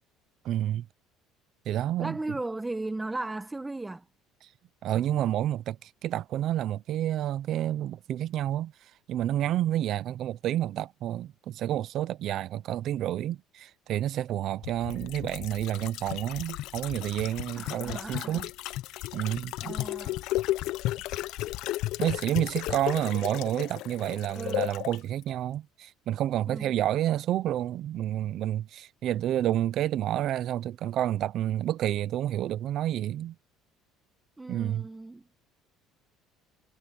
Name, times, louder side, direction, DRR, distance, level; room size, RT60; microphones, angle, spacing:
voice 1, 0.4-0.9 1.7-2.2 4.8-18.5 19.1-19.8 22.0-33.4 34.5-34.8, right 12 dB, 50° right, 0.7 m, -29 dB
voice 2, 2.0-4.1 17.5-18.4 19.6-20.2 24.3-24.7 26.5-26.7 34.4-35.3, right 2 dB, 10° right, 1.2 m, -36 dB
sound 1, 14.6-25.0 25.3-25.4, left 16 dB, 65° left, 0.6 m, -34 dB
cardioid pair, 145°, 0 cm